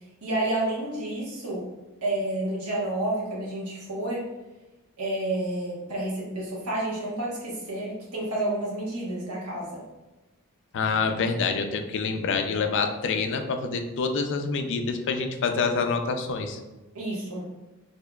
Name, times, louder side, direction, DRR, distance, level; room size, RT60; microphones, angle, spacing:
voice 1, 0.2-1.7 2.0-4.2 5.0-9.8 16.9-17.5, right 1 dB, 75° right, -4 dB, 1.2 m, -30 dB
voice 2, 10.7-16.6, left 4 dB, 55° left, 6 dB, 0.4 m, -26 dB
4.3 x 2.8 x 2.3 m, 1.1 s
head